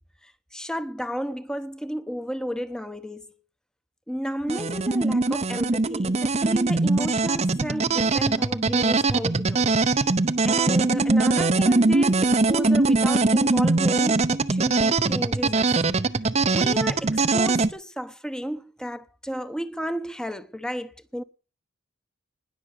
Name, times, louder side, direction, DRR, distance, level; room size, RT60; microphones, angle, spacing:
voice 1, 0.2-3.3 4.1-9.7 10.4-15.7 16.5-21.2, equal, 5° left, 0.9 m, -33 dB
sound 1, 4.5-17.7, right 3 dB, 30° right, 0.7 m, -22 dB
20.5 x 7.1 x 6.8 m
head